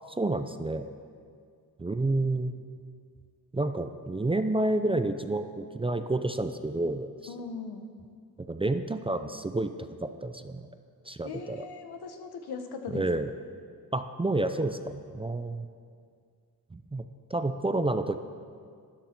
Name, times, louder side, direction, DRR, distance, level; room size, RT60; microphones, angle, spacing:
voice 1, 0.2-0.9 1.8-2.5 3.5-7.1 8.5-9.7 10.0-10.7 11.1-11.7 12.9-13.3 13.9-15.7 16.7-17.0 17.3-18.2, right 2 dB, 15° right, 9 dB, 0.4 m, -29 dB
voice 2, 7.3-7.9 11.2-13.1, left 5 dB, 80° left, 5 dB, 1.1 m, -39 dB
13.0 x 10.0 x 4.5 m, 2.2 s
cardioid pair, 90°, 38 cm